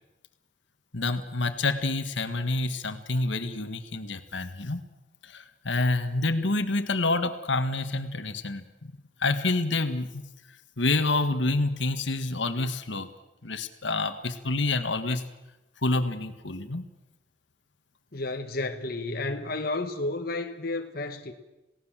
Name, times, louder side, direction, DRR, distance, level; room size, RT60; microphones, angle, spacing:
voice 1, 0.9-4.8 5.2-10.2 10.8-13.1 13.4-15.2 15.8-16.9, left 2 dB, 75° left, 1.7 m, -28 dB
voice 2, 18.1-21.3, left 2 dB, 50° left, 1.5 m, -31 dB
28.0 x 18.0 x 7.5 m
head